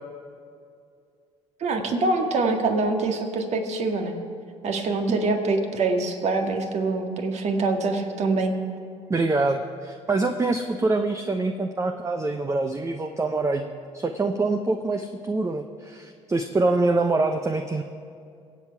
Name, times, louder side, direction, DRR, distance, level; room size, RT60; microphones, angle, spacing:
voice 1, 1.6-4.1 4.6-8.5, right 3 dB, 50° right, 4 dB, 1.9 m, -24 dB
voice 2, 9.1-13.7 13.9-17.8, right 3 dB, 20° right, 6 dB, 0.8 m, -25 dB
24.0 x 8.2 x 4.8 m, 2.3 s
hypercardioid pair, 60°, 14 cm